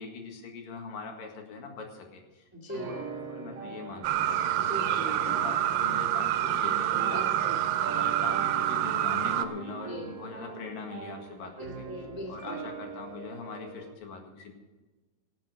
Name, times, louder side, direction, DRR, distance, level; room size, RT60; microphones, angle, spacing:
voice 1, 0.0-3.1 3.3-7.2 7.8-11.9 12.3-14.5, left 5 dB, 85° left, 3 dB, 3.5 m, -42 dB
voice 2, 2.5-3.0 4.6-5.2 6.4-7.6 9.8-10.1 11.6-12.6, right 1 dB, 10° right, 0 dB, 1.0 m, -40 dB
sound 1, 2.7-13.9, right 5 dB, 50° right, 2.6 m, -42 dB
sound 2, 4.0-9.5, right 12 dB, 80° right, 2.2 m, -27 dB
sound 3, 5.3-7.8, left 1 dB, 55° left, 3.4 m, -48 dB
17.5 x 7.5 x 6.5 m, 1.2 s
omnidirectional pair, 3.9 m